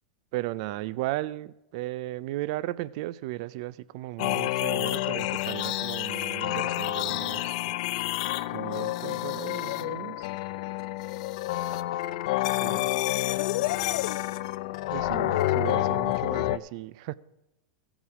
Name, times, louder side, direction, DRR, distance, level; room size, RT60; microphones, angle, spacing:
voice 1, 0.3-7.6 8.5-10.3 12.5-12.9 14.9-17.1, right 17 dB, 55° right, 0.4 m, -35 dB
sound 1, 4.2-16.6, left 15 dB, 65° left, 0.4 m, -29 dB
15.0 x 7.2 x 4.8 m
supercardioid pair, 140°, 4 cm